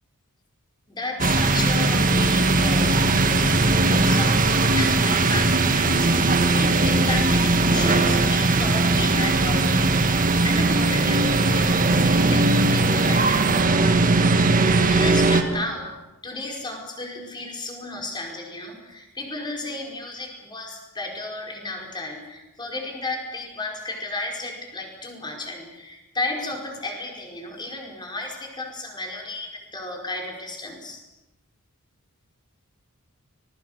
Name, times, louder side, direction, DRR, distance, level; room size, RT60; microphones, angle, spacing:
voice 1, 0.9-13.4 14.5-15.9 16.2-31.0, left 2 dB, 20° left, 1 dB, 4.9 m, -33 dB
sound 1, 1.2-15.4, right 2 dB, 40° right, 1.7 m, -19 dB
25.5 x 21.0 x 6.6 m, 1.0 s
head